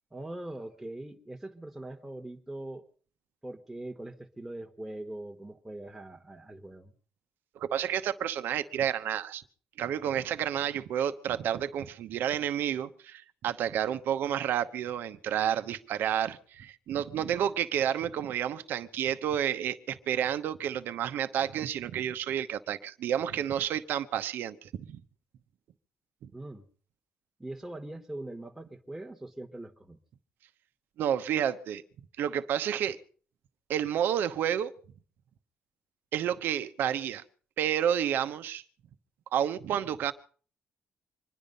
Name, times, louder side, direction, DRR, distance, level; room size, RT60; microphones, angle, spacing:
voice 1, 0.1-2.8 3.4-6.9 26.3-26.6 27.4-30.0, right 1 dB, 10° right, 1.4 m, -42 dB
voice 2, 7.5-9.4 9.8-25.0 26.2-26.3 31.0-31.8 32.2-33.0 33.7-34.7 36.1-37.2 37.6-38.6 39.3-40.1, right 10 dB, 75° right, 1.0 m, -30 dB
25.5 x 10.5 x 5.4 m
cardioid pair, 90°, 3 cm